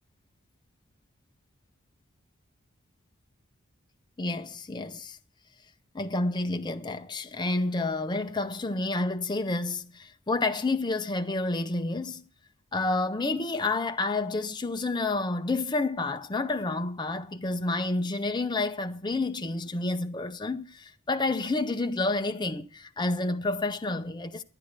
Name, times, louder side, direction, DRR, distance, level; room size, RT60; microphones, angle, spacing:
voice 1, 4.2-5.2 5.9-12.2 12.7-24.3, left 2 dB, 20° left, 0.6 m, -29 dB
11.5 x 9.4 x 6.5 m
head